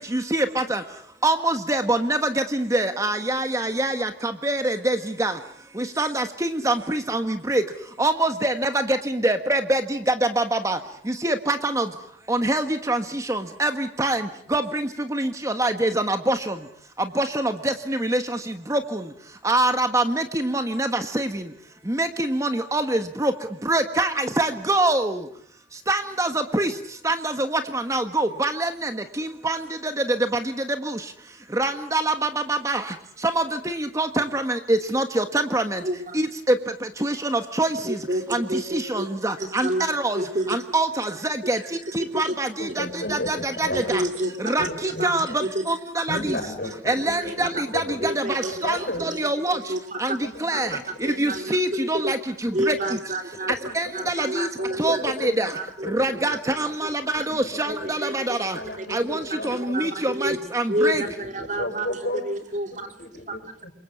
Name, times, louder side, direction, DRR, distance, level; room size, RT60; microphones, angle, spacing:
voice 1, 0.1-0.8 1.2-5.4 5.8-7.6 8.0-10.8 11.1-11.9 12.3-16.5 17.1-18.4 18.7-19.0 19.4-21.4 21.9-23.3 23.6-25.2 25.9-26.7 27.0-28.9 29.2-29.9 30.8-31.0 31.5-32.8 33.2-35.8 36.1-36.3 37.0-38.0 38.3-40.2 40.5-41.6 41.9-44.0 44.4-45.3 45.7-46.4 46.8-49.6 50.0-52.7 53.7-54.5 54.8-55.5 55.8-58.6 58.9-61.0, right 2 dB, 20° right, 8 dB, 1.4 m, -25 dB
voice 2, 37.9-39.0 39.4-39.8 40.1-40.6 42.1-42.3 43.7-44.7 45.0-45.6 46.6-46.7 47.3-47.4 48.0-48.7 49.5-50.0 50.5-51.5 52.0-52.1 52.5-53.5 53.9-55.0 55.5-55.6 56.3-56.4 56.8-56.9 57.2-57.3 57.7-58.4 58.8-59.0 59.5-60.4 60.7-61.9 62.2-62.9, right 1 dB, 45° right, 6 dB, 3.2 m, -29 dB
voice 3, 42.6-44.0 44.6-45.1 46.1-48.4 48.6-49.0 50.2-51.4 53.5-53.9 54.6-55.3 55.8-56.6 57.1-57.9 58.5-59.9 60.3-60.4 60.9-62.3 62.8-63.7, left 1 dB, 60° left, 6 dB, 6.4 m, -34 dB
28.5 x 23.5 x 7.7 m, 0.65 s
head